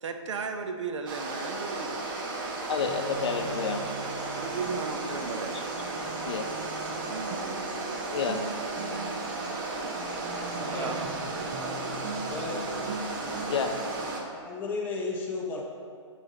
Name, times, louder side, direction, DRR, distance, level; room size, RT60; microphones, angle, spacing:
voice 1, 0.0-2.1 4.3-5.6 7.1-7.4 10.7-11.1, right 5 dB, 70° right, 6 dB, 0.6 m, -35 dB
sound 1, 1.1-14.2, right 2 dB, 40° right, 0.9 m, -34 dB
Guitar, 2.5-13.8, right 3 dB, 25° right, 0.4 m, -42 dB
voice 2, 2.7-3.9 5.5-5.6 6.2-6.5 8.1-8.5 13.5-13.8, left 5 dB, 60° left, 6 dB, 0.6 m, -30 dB
sound 2, 3.1-14.0, equal, 10° right, 1.1 m, -54 dB
voice 3, 10.6-11.0 11.6-12.0 12.3-12.6 14.3-15.6, left 3 dB, 10° left, -2 dB, 0.7 m, -34 dB
5.9 x 4.1 x 4.9 m, 2.2 s
hypercardioid pair, 155°, 16 cm